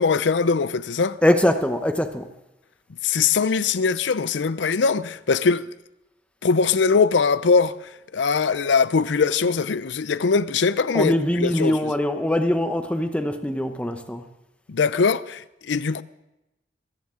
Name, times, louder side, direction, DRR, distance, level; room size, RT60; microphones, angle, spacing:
voice 1, 0.0-1.2 3.0-5.7 6.4-11.9 14.7-16.0, left 5 dB, 90° left, 0.5 m, -21 dB
voice 2, 1.2-2.3 10.9-14.3, left 1 dB, 5° left, 0.8 m, -22 dB
22.5 x 15.0 x 3.8 m
head